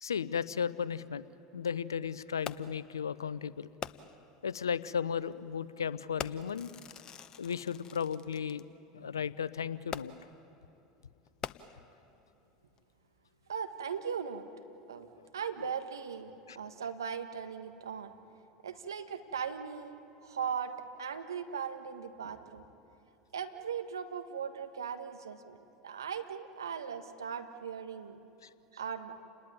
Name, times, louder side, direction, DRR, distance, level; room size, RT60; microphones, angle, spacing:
voice 1, 0.0-1.2 1.5-3.7 4.4-6.7 7.4-8.6 8.9-10.1 16.5-16.6, left 7 dB, 90° left, 17 dB, 0.7 m, -35 dB
Fireworks, 2.5-2.9 3.8-4.3 5.2-5.3 6.2-8.6 9.9-10.4 11.3-12.1 12.8-12.9, left 8 dB, 35° left, 0.9 m, -43 dB
voice 2, 13.5-14.4 14.9-15.1 15.3-18.1 18.6-22.6 23.3-25.6 25.8-28.2 28.7-29.2, right 7 dB, 85° right, 7 dB, 1.6 m, -38 dB
29.5 x 20.0 x 9.5 m, 2.9 s
hypercardioid pair, 80°, 2 cm